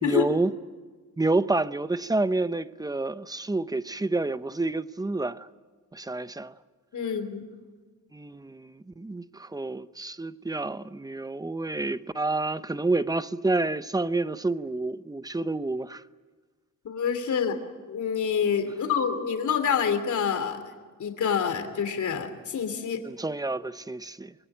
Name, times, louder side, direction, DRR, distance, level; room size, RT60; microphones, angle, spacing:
voice 1, 0.0-0.5 1.2-5.5 5.9-6.5 8.1-16.0 23.0-24.3, right 2 dB, 10° right, 0.7 m, -29 dB
voice 2, 6.9-7.4 16.8-17.6 17.9-20.6 21.0-23.0, left 7 dB, 70° left, 2.9 m, -27 dB
26.0 x 21.5 x 9.2 m
wide cardioid pair, 115°, 31 cm